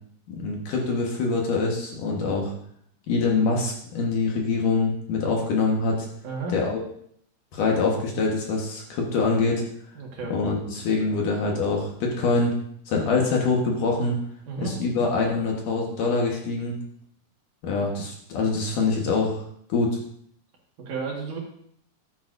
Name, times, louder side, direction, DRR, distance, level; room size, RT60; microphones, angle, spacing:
voice 1, 0.3-2.5 3.1-6.1 6.5-6.8 7.5-9.6 10.3-12.6 12.9-14.2 14.6-16.8 17.6-19.4 19.7-20.0, left 3 dB, 65° left, -1 dB, 2.6 m, -24 dB
voice 2, 6.2-6.6 10.0-10.3 14.5-14.8 20.8-21.4, right 4 dB, 60° right, -1 dB, 2.9 m, -32 dB
14.0 x 10.5 x 2.6 m, 0.67 s
omnidirectional pair, 4.5 m